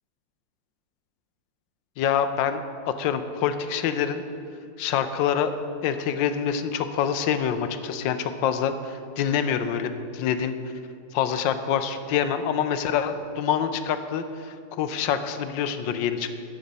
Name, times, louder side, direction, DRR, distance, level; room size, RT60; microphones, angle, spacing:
voice 1, 2.0-4.2 4.8-5.5 5.8-10.5 11.1-16.3, left 8 dB, 85° left, 10 dB, 1.3 m, -26 dB
13.0 x 5.1 x 5.3 m, 2.4 s
omnidirectional pair, 2.0 m